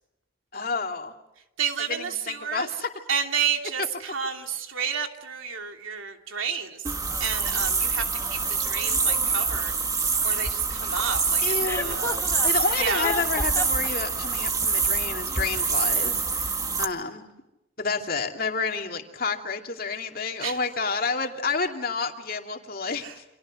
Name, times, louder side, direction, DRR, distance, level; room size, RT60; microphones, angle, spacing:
voice 1, 0.5-1.1 1.9-2.9 3.8-3.9 11.4-12.1 12.4-17.2 17.8-23.2, left 4 dB, 45° left, 3 dB, 2.6 m, -30 dB
voice 2, 1.6-2.7 3.1-6.9 7.2-9.7 10.2-12.2 12.8-13.1 20.4-20.6 23.0-23.1, right 6 dB, 80° right, 4 dB, 2.9 m, -30 dB
sound 1, 6.8-16.9, right 4 dB, 15° right, 1.7 m, -26 dB
Chuckle chortle, 11.6-13.9, left 2 dB, 15° left, 1.4 m, -32 dB
29.5 x 27.0 x 6.4 m, 0.92 s
head